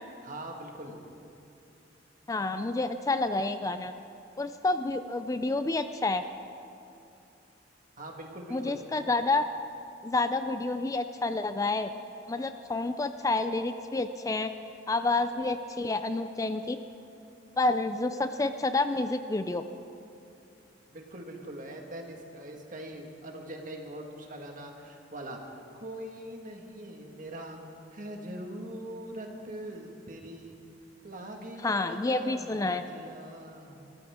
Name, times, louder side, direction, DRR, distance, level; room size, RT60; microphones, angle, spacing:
voice 1, 0.2-1.0 8.0-8.8 20.9-27.6 27.9-30.6 31.0-33.9, right 1 dB, 45° right, 2 dB, 1.7 m, -42 dB
voice 2, 2.3-3.9 4.4-6.2 8.5-9.4 10.0-11.9 12.3-14.5 14.9-16.8 17.6-19.6 31.6-32.8, left 2 dB, 20° left, 9 dB, 0.4 m, -29 dB
24.0 x 13.5 x 3.6 m, 2.7 s
head